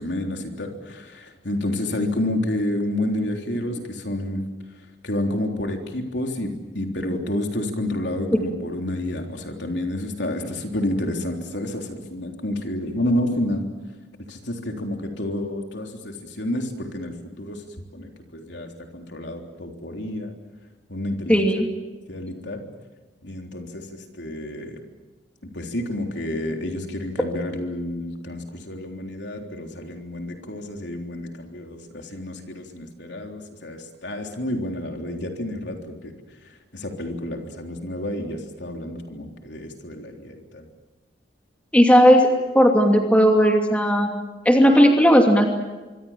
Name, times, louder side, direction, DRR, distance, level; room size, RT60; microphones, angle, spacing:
voice 1, 0.0-4.4 5.0-13.7 14.3-17.6 17.9-20.3 20.9-21.5 22.1-22.6 23.2-24.8 25.4-36.1 36.7-40.7, left 1 dB, 70° left, 3 dB, 3.6 m, -29 dB
voice 2, 21.3-21.7 41.7-42.3 42.5-44.1 44.4-45.5, equal, 5° left, 2 dB, 2.6 m, -15 dB
25.5 x 25.0 x 7.5 m, 1.2 s
head